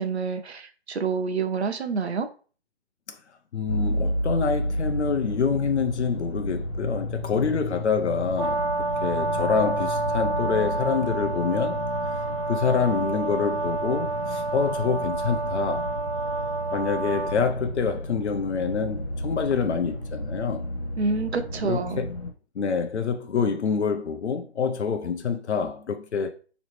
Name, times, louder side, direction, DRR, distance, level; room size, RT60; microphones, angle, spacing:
voice 1, 0.0-2.3 21.0-22.0, right 5 dB, 70° right, 0.8 m, -28 dB
voice 2, 3.5-11.8 12.5-15.9 16.7-20.7 21.6-22.1 22.6-26.4, left 5 dB, 80° left, 0.7 m, -26 dB
sound 1, 3.7-22.3, left 1 dB, 65° left, 1.8 m, -32 dB
Brass instrument, 8.4-17.4, right 3 dB, 30° right, 0.5 m, -29 dB
5.1 x 3.1 x 3.1 m
hypercardioid pair, 170°, 33 cm